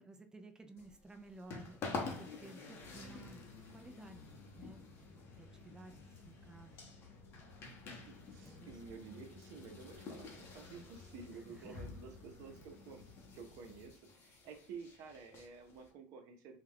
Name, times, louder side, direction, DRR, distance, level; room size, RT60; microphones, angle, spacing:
voice 1, 0.0-6.9 8.4-8.7 11.3-11.8, right 2 dB, 10° right, 7 dB, 0.3 m, -56 dB
sound 1, 0.8-15.9, left 4 dB, 40° left, 0.7 m, -49 dB
sound 2, 2.8-13.9, left 3 dB, 75° left, 0.8 m, -58 dB
voice 2, 8.1-13.0 13.3-16.6, right 5 dB, 60° right, 5 dB, 0.7 m, -52 dB
2.3 x 2.2 x 3.4 m, 0.40 s
cardioid pair, 130°, 6 cm